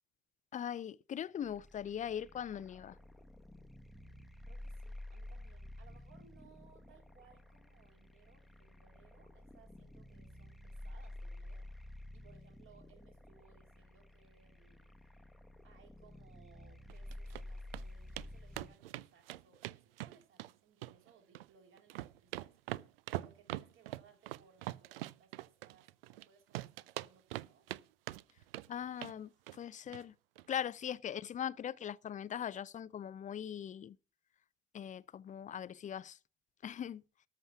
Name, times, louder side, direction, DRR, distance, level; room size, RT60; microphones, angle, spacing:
voice 1, 0.5-3.0 28.7-30.1 30.5-34.0 34.7-36.2 36.6-37.0, left 9 dB, 25° left, 0.5 m, -40 dB
sound 1, 1.4-18.8, left 1 dB, ahead, 1.1 m, -51 dB
voice 2, 4.4-14.9 15.6-27.7 30.6-30.7, right 7 dB, 40° right, 3.3 m, -65 dB
sound 2, 16.9-17.4 17.7-17.8 18.2-18.3 18.5-20.5 20.8-21.5 21.8-26.2 26.5-27.8 28.1-28.7 29.0-29.2 29.5-29.6 29.9-30.0 30.3-30.4, right 16 dB, 70° right, 0.5 m, -43 dB
13.0 x 6.3 x 5.9 m
figure-of-eight pair, 60°, 30 cm